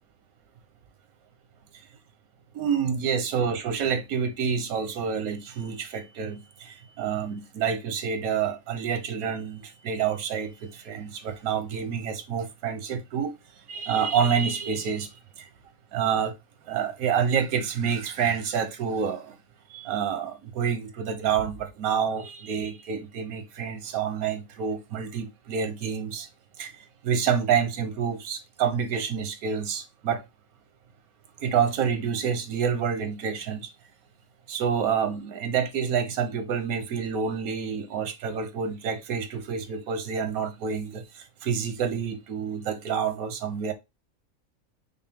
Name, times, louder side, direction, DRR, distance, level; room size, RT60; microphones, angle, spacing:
voice 1, 2.5-13.3 13.7-15.5 15.9-16.3 16.7-19.4 19.7-26.3 26.6-26.7 27.0-30.2 31.4-33.7 34.5-43.7, right 7 dB, 85° right, 1.2 m, -28 dB
5.6 x 2.0 x 3.5 m
omnidirectional pair, 1.5 m